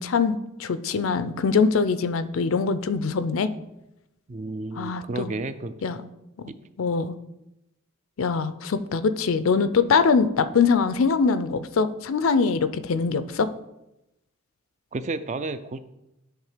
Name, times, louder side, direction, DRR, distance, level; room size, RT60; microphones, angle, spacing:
voice 1, 0.0-3.5 4.8-5.3 5.8-6.0 6.8-7.2 8.2-13.5, left 5 dB, 75° left, 13 dB, 0.5 m, -23 dB
voice 2, 4.3-5.7 6.5-6.6 14.9-15.8, right 2 dB, 35° right, 12 dB, 0.4 m, -31 dB
10.5 x 3.6 x 5.0 m, 0.90 s
head